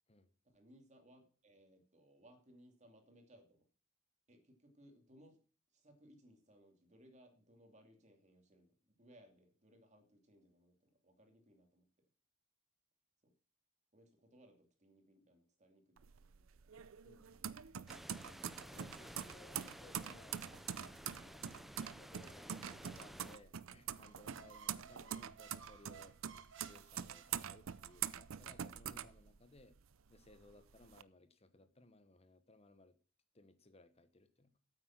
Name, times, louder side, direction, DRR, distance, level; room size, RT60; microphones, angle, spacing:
voice 1, 0.4-3.7 4.3-5.4 5.7-11.9 13.2-13.3 13.9-16.5 21.4-21.6, equal, 35° right, 4 dB, 2.7 m, -65 dB
sound 1, 16.0-29.8 30.2-31.0, right 9 dB, 85° right, 0.6 m, -45 dB
voice 2, 17.0-17.6 18.7-20.4 21.0-21.4 22.0-26.2 26.6-29.8 30.1-33.0 33.3-34.6, left 2 dB, 30° left, 11 dB, 1.2 m, -62 dB
sound 2, 17.9-23.4, equal, ahead, 0.5 m, -54 dB
sound 3, 23.9-28.0, right 7 dB, 65° right, 1.3 m, -58 dB
8.9 x 8.7 x 6.0 m, 0.39 s
head